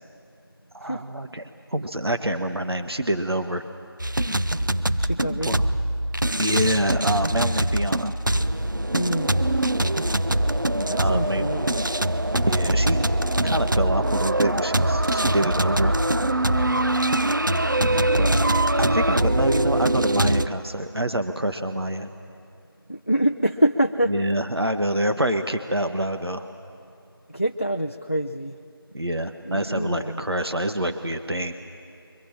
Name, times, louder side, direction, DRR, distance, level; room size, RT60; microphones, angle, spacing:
voice 1, 0.7-3.6 5.4-5.7 6.4-8.1 11.0-11.5 12.5-13.0 13.4-16.0 18.2-18.4 18.8-22.1 24.1-26.4 28.9-31.5, right 1 dB, 85° right, 7 dB, 1.4 m, -26 dB
sound 1, 4.0-20.5, right 1 dB, 55° right, 0.7 m, -23 dB
voice 2, 5.0-5.6 8.9-9.4 10.9-11.9 17.8-18.3 22.9-24.3 27.3-28.6 29.5-30.2, right 1 dB, 30° left, 6 dB, 0.5 m, -26 dB
28.0 x 23.5 x 7.5 m, 2.5 s
figure-of-eight pair, 175°, 13 cm